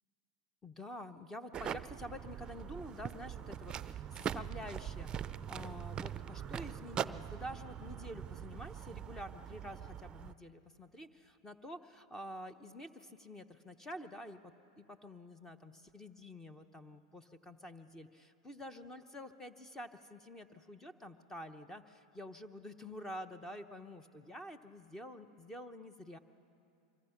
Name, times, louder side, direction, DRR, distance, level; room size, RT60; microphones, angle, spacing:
voice 1, 0.6-26.2, equal, 15° left, 11 dB, 0.9 m, -48 dB
sound 1, 1.5-10.3, right 8 dB, 25° right, 0.5 m, -42 dB
24.5 x 24.0 x 5.9 m, 2.7 s
hypercardioid pair, 105°, 3 cm